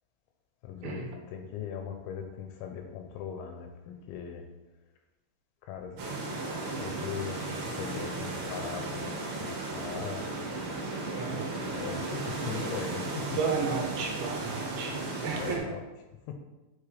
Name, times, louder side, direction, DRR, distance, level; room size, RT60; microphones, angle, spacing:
voice 1, 0.6-4.5 5.6-6.1 6.6-10.3 11.7-13.4 15.4-15.8 16.3-16.4, left 7 dB, 80° left, 4 dB, 2.8 m, -39 dB
sound 1, 6.0-15.6, right 2 dB, 60° right, 2.6 m, -35 dB
voice 2, 11.2-11.5 13.4-15.7, right 5 dB, 75° right, 2 dB, 3.2 m, -33 dB
9.5 x 7.1 x 3.4 m, 1.1 s
omnidirectional pair, 5.7 m